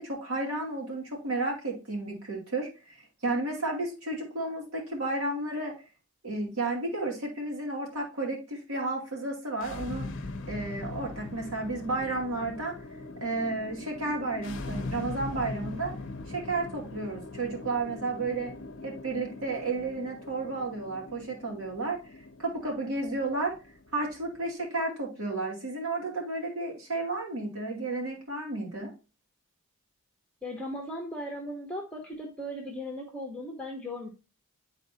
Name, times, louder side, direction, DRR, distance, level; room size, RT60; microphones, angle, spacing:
voice 1, 0.0-5.7 6.2-10.1 10.5-12.8 13.2-15.9 16.3-18.5 18.8-22.0 22.4-23.5 23.9-28.9, right 2 dB, 70° right, -1 dB, 2.5 m, -32 dB
sound 1, 9.5-24.5, left 2 dB, 55° left, 0.7 m, -41 dB
voice 2, 30.4-34.1, left 1 dB, 5° left, 1 dB, 1.0 m, -37 dB
9.9 x 4.1 x 2.8 m, 0.32 s
head